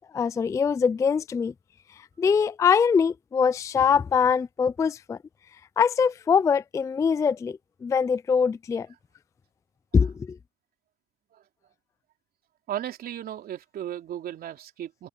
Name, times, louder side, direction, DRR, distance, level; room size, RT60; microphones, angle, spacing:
voice 1, 0.1-1.5 2.2-5.2 5.8-8.9 9.9-10.4, left 6 dB, 15° left, 0.3 m, -23 dB
voice 2, 12.7-15.1, right 11 dB, 50° right, 3.3 m, -35 dB
supercardioid pair, 95°, 20 cm